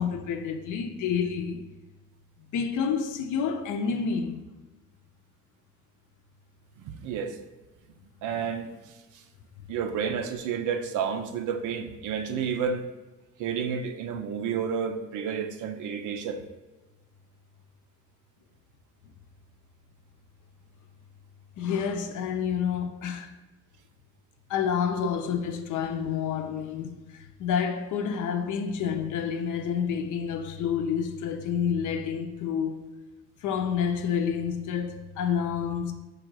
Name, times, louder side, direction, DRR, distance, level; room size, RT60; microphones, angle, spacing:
voice 1, 0.0-1.6 2.4-4.4 21.6-23.3 24.5-32.8 33.4-35.9, left 7 dB, 80° left, 0.6 m, -29 dB
voice 2, 6.8-7.4 8.2-8.7 9.7-12.9 13.4-16.4, right 6 dB, 80° right, 0.5 m, -30 dB
4.7 x 2.4 x 4.6 m
cardioid pair, 90°, 30 cm